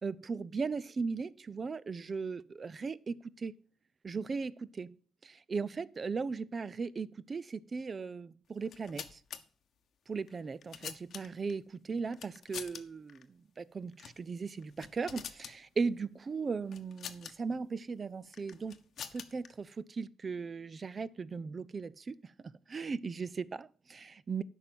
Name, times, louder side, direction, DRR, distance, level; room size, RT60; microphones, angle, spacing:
voice 1, 0.0-3.5 4.0-5.0 5.2-9.2 10.1-18.8 19.1-22.3 22.7-24.4, right 4 dB, 35° right, 0.5 m, -37 dB
sound 1, 8.6-9.4 10.3-11.5 12.1-12.8 13.1-13.2 13.9-14.2 14.6-15.6 16.7-17.3 18.3-19.5, left 8 dB, 60° left, 0.9 m, -45 dB
8.8 x 5.5 x 7.7 m
cardioid pair, 90°, 0 cm